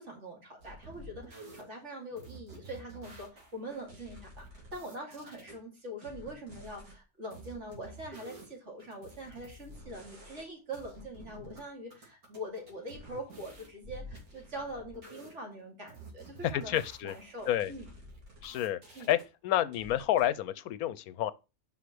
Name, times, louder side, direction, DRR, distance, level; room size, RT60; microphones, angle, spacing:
voice 1, 0.0-16.7 17.0-17.9 18.9-19.1, right 1 dB, 50° right, 2.7 m, -43 dB
sound 1, 0.6-1.6 2.2-5.5 6.0-7.0 7.3-8.5 8.8-10.5 10.7-11.6 11.9-15.3 15.9-19.3 19.7-20.3, right 1 dB, 85° right, 2.8 m, -50 dB
voice 2, 16.5-17.1 17.5-17.7 18.4-18.8 19.1-19.2 19.4-21.3, left 12 dB, 85° left, 1.1 m, -29 dB
5.6 x 5.0 x 6.0 m
omnidirectional pair, 1.5 m